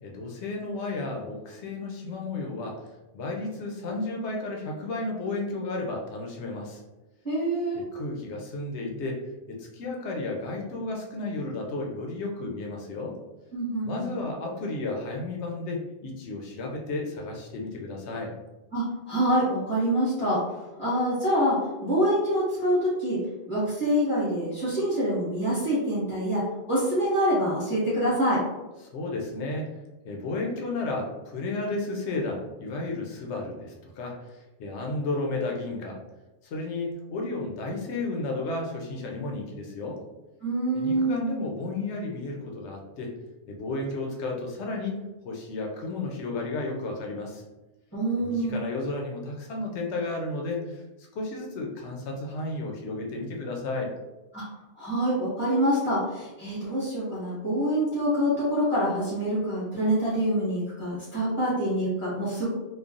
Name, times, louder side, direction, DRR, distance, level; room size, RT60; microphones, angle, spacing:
voice 1, 0.0-2.8 3.1-6.8 7.7-9.2 9.5-13.2 13.8-18.3 28.8-29.8 30.0-36.0 36.4-40.0 40.7-43.1 43.5-47.4 48.2-53.9, left 2 dB, 80° left, 0 dB, 0.9 m, -33 dB
voice 2, 7.2-7.8 13.5-14.1 18.7-20.4 20.8-23.2 23.5-28.4 40.4-41.2 47.9-48.6 54.3-54.4 54.8-62.5, equal, 10° left, -11 dB, 1.3 m, -26 dB
3.1 x 2.1 x 2.4 m, 1.1 s
omnidirectional pair, 1.1 m